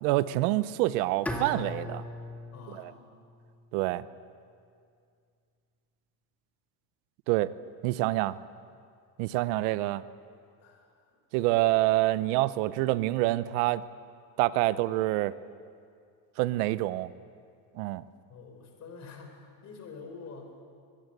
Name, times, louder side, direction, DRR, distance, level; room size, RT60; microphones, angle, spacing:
voice 1, 0.0-2.0 3.7-4.0 7.3-7.5 7.8-8.4 9.2-10.0 11.3-13.8 14.4-15.3 16.4-17.1 17.7-18.0, right 17 dB, 70° right, 16 dB, 0.9 m, -26 dB
Bowed string instrument, 1.3-4.3, left 1 dB, 5° left, 2.0 m, -39 dB
voice 2, 2.5-3.1 10.6-11.2 18.3-20.5, left 4 dB, 35° left, 4 dB, 4.7 m, -47 dB
24.0 x 20.5 x 8.1 m, 2.3 s
cardioid pair, 155°, 47 cm